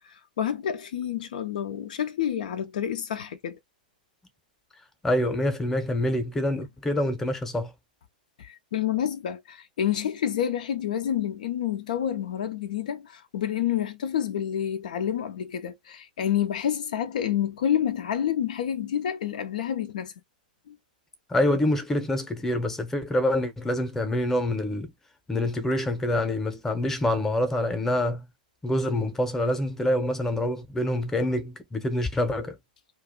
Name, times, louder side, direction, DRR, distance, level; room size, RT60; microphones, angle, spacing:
voice 1, 0.0-3.6 8.4-20.1 20.7-20.8, left 10 dB, 65° left, 0.4 m, -28 dB
voice 2, 5.0-7.7 21.3-24.9 25.3-28.3 28.6-32.6, left 1 dB, 10° left, 0.7 m, -26 dB
2.4 x 2.3 x 3.6 m
figure-of-eight pair, 105°, 5 cm